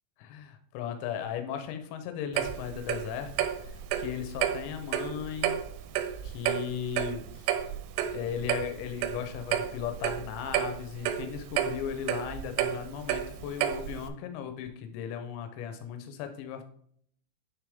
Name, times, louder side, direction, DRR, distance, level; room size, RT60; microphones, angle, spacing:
voice 1, 0.2-3.3 3.6-5.6 6.2-7.6 8.1-16.6, left 8 dB, 85° left, 7 dB, 2.5 m, -37 dB
Clock, 2.4-14.1, right 10 dB, 85° right, 3.2 m, -31 dB
9.5 x 3.3 x 3.4 m, 0.64 s
omnidirectional pair, 5.9 m